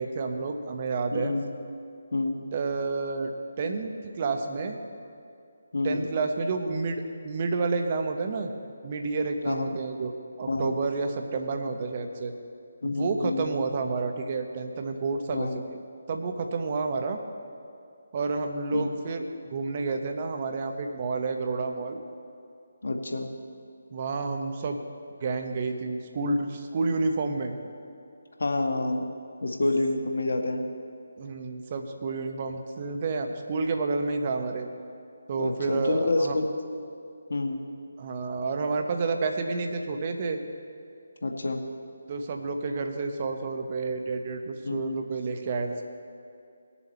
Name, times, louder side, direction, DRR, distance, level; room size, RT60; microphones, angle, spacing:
voice 1, 0.0-1.3 2.5-4.8 5.8-8.5 8.8-10.1 10.4-12.3 12.8-15.8 16.1-17.2 18.1-19.3 19.5-22.0 23.9-24.8 25.2-27.5 31.2-34.7 35.3-36.4 38.0-40.4 42.1-45.8, right 3 dB, 35° right, 5 dB, 0.9 m, -30 dB
voice 2, 1.1-1.4 2.1-2.5 5.7-6.0 9.4-9.7 10.5-10.7 12.8-13.5 15.3-15.6 18.7-18.9 22.8-23.3 28.4-29.1 29.4-30.6 35.4-36.4 37.3-37.6 41.2-41.6 44.6-45.0, left 2 dB, 65° left, 4 dB, 1.2 m, -28 dB
19.5 x 7.1 x 4.3 m, 2.5 s
figure-of-eight pair, 155°, 0 cm